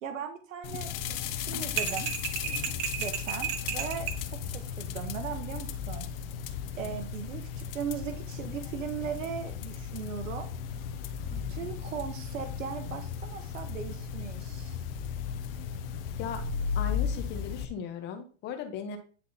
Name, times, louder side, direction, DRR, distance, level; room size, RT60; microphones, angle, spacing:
voice 1, 0.0-2.1 3.0-6.1 6.8-10.5 11.3-14.8, right 7 dB, 90° right, 6 dB, 1.3 m, -38 dB
sound 1, 0.6-17.6, left 7 dB, 50° left, 1.0 m, -35 dB
sound 2, 1.8-4.2, right 10 dB, 40° right, 1.2 m, -33 dB
voice 2, 16.7-19.0, left 6 dB, 30° left, 7 dB, 1.1 m, -37 dB
9.9 x 3.6 x 4.1 m, 0.38 s
supercardioid pair, 155°, 37 cm